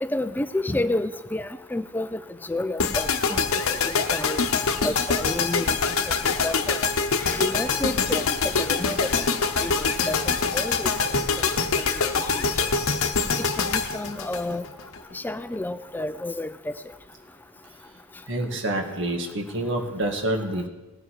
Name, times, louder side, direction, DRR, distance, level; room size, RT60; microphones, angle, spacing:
voice 1, 0.0-2.2 2.5-3.4 3.8-4.4 4.8-5.8 6.1-6.9 7.2-9.0 9.6-10.9 13.4-14.6 15.1-16.7, left 1 dB, 10° left, 12 dB, 0.4 m, -30 dB
sound 1, 2.8-15.0, left 5 dB, 80° left, 0.9 m, -24 dB
voice 2, 18.3-20.7, right 1 dB, 60° right, 3 dB, 1.8 m, -27 dB
19.0 x 7.5 x 4.7 m, 1.2 s
head